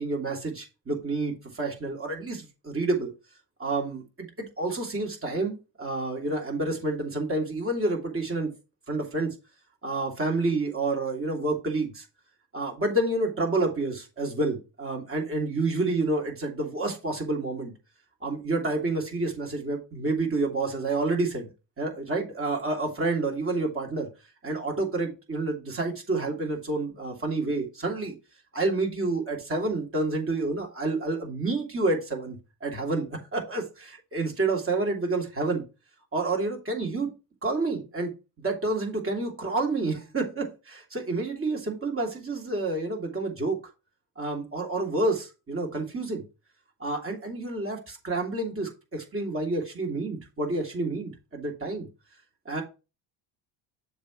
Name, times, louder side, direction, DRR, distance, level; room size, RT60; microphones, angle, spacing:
voice 1, 0.0-3.1 3.6-4.0 4.4-8.5 8.9-9.3 9.8-12.0 12.5-17.7 18.2-21.5 21.8-24.1 24.4-28.1 28.5-35.6 36.1-37.1 37.4-38.1 38.4-43.6 44.2-46.2 46.8-51.9 52.4-52.6, right 2 dB, 25° right, 2.9 m, -29 dB
7.1 x 3.3 x 6.0 m
supercardioid pair, 80°, 48 cm